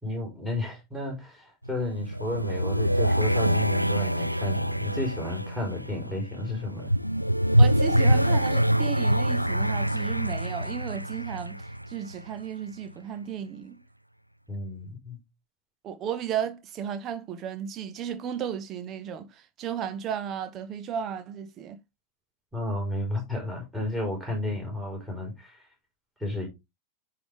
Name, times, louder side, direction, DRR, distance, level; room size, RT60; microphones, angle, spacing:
voice 1, 0.0-6.9 14.5-15.2 22.5-25.6 26.2-26.5, left 1 dB, 5° right, 4.2 m, -32 dB
sound 1, 1.6-12.4, equal, 90° right, 0.3 m, -25 dB
voice 2, 7.6-13.8 15.8-21.8, right 8 dB, 30° right, 1.0 m, -34 dB
9.9 x 3.9 x 3.4 m
figure-of-eight pair, 90°, 0 cm